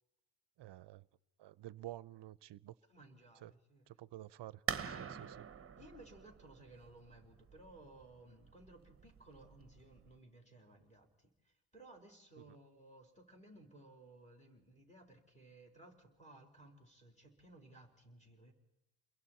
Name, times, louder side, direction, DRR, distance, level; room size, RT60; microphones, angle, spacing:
voice 1, 0.6-1.1 1.4-2.8 3.4-3.5 3.9-4.6 5.0-5.1 12.5-12.6, right 14 dB, 55° right, 0.6 m, -50 dB
voice 2, 2.9-3.9 4.8-5.2 5.8-18.5, right 2 dB, 15° left, 4.1 m, -59 dB
sound 1, 4.7-10.2, right 7 dB, 25° right, 1.0 m, -45 dB
29.5 x 22.0 x 4.4 m
cardioid pair, 125°, 49 cm